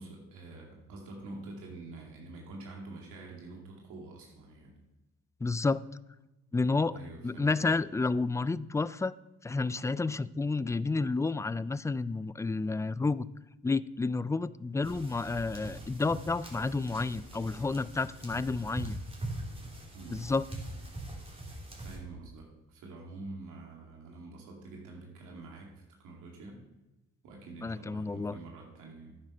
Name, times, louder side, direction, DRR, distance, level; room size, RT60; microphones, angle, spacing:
voice 1, 0.0-4.8 6.9-7.5 19.9-20.3 21.8-26.6 27.2-29.2, right 2 dB, 90° right, -1 dB, 2.5 m, -46 dB
voice 2, 5.4-5.8 6.5-7.0 7.2-9.1 9.4-13.3 13.6-19.0 20.1-20.4 27.6-28.4, left 3 dB, 10° left, 17 dB, 0.3 m, -30 dB
sound 1, 14.8-22.0, right 2 dB, 20° right, 3.4 m, -42 dB
9.8 x 7.6 x 5.8 m, 1.0 s
cardioid pair, 90°, 30 cm